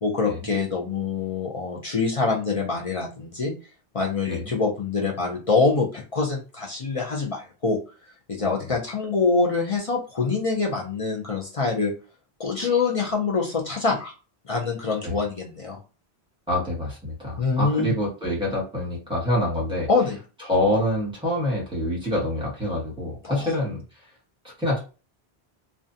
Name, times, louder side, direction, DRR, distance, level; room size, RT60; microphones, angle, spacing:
voice 1, 0.0-3.5 3.9-7.8 8.3-11.9 12.4-14.1 14.5-15.8 17.4-17.9 19.9-20.2 23.2-23.5, left 4 dB, 45° left, 0 dB, 0.5 m, -25 dB
voice 2, 8.4-8.7 15.0-15.2 16.5-19.9 20.4-23.8 24.4-24.8, left 1 dB, 5° right, -4 dB, 1.1 m, -26 dB
2.5 x 2.2 x 2.6 m, 0.33 s
omnidirectional pair, 1.1 m